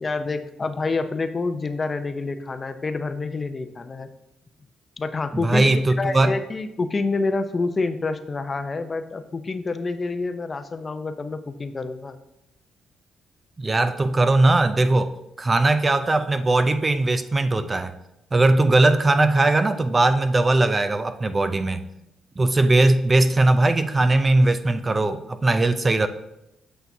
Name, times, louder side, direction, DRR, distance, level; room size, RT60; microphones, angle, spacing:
voice 1, 0.0-4.1 5.0-5.7 6.0-12.2, left 3 dB, 30° left, 0.5 m, -27 dB
voice 2, 5.3-6.3 13.6-15.1 15.4-17.9 18.3-21.8 22.4-26.1, right 2 dB, 25° right, 0.4 m, -19 dB
8.2 x 5.7 x 2.7 m
cardioid pair, 90°, 0 cm